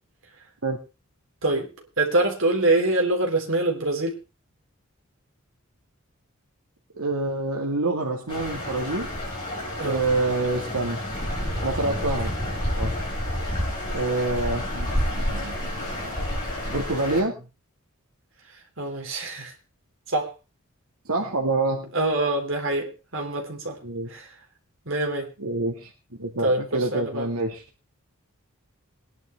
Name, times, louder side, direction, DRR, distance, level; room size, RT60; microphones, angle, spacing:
voice 1, 2.0-4.1 9.8-10.0 18.8-19.5 20.1-20.3 21.9-23.8 24.1-24.3 24.9-25.3 26.2-27.3, right 2 dB, 60° right, 1 dB, 3.8 m, -25 dB
voice 2, 7.0-9.1 9.8-11.0 11.6-12.3 12.8-13.0 13.9-16.2 16.7-17.4 21.1-21.9 23.8-24.1 25.4-25.9 26.2-27.6, right 2 dB, 80° right, 1 dB, 2.1 m, -27 dB
sound 1, 8.3-17.2, left 1 dB, 20° left, 7.9 m, -29 dB
21.0 x 11.0 x 3.5 m, 0.31 s
head